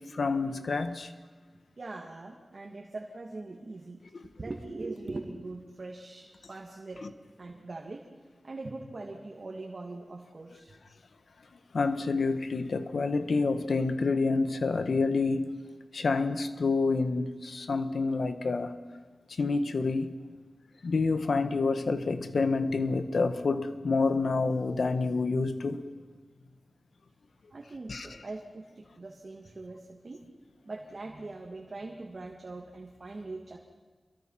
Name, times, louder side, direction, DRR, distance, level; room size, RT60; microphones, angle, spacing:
voice 1, 0.1-1.1 11.7-15.5 15.9-18.7 19.4-20.1 20.8-25.8 27.9-28.1, left 3 dB, 75° left, 1.5 m, -28 dB
voice 2, 1.8-4.0 4.4-7.0 7.4-8.1 8.4-10.8 27.5-30.3 30.6-33.6, right 2 dB, 50° right, 2.5 m, -41 dB
28.0 x 23.0 x 5.9 m
wide cardioid pair, 95°, 0 cm